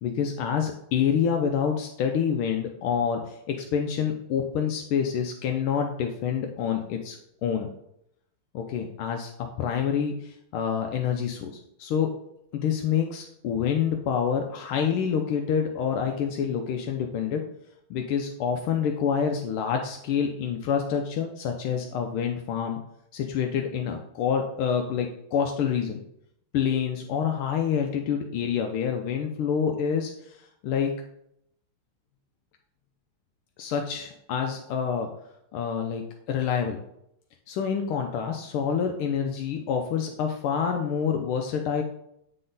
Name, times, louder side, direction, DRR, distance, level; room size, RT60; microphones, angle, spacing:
voice 1, 0.0-7.7 8.5-9.3 9.6-11.5 11.8-12.1 12.5-17.5 17.9-22.8 23.1-26.0 26.5-30.4 30.6-30.9 33.6-35.1 35.5-36.8 37.5-41.8, left 7 dB, 85° left, 3 dB, 1.5 m, -27 dB
8.4 x 3.9 x 3.9 m, 0.76 s
omnidirectional pair, 2.3 m